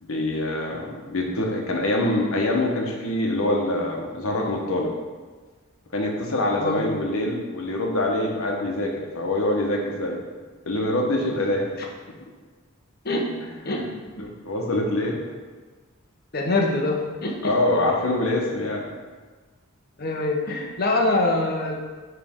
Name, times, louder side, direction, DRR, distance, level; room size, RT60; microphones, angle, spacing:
voice 1, 0.0-4.9 5.9-10.2 10.6-11.7 13.7-13.9 14.2-15.2 17.4-18.9, left 1 dB, 75° left, 0 dB, 1.1 m, -25 dB
voice 2, 16.3-17.5 20.0-21.7, left 2 dB, 45° left, 0 dB, 0.9 m, -24 dB
9.1 x 3.4 x 3.6 m, 1.4 s
head